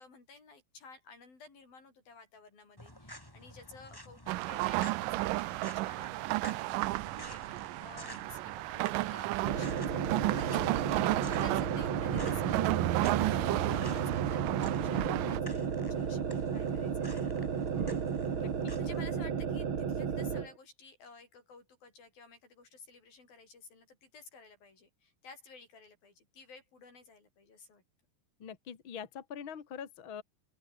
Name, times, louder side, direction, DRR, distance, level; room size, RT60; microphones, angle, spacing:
voice 1, 0.0-17.5 18.8-27.8, left 4 dB, 85° left, 9.0 m, -55 dB
sound 1, 2.8-19.0, left 1 dB, 5° left, 5.1 m, -51 dB
sound 2, 4.3-15.4, right 19 dB, 80° right, 2.1 m, -33 dB
sound 3, 9.4-20.5, right 6 dB, 40° right, 2.5 m, -33 dB
voice 2, 18.4-18.7 28.4-30.2, left 7 dB, 40° left, 2.6 m, -44 dB
open air
omnidirectional pair, 4.1 m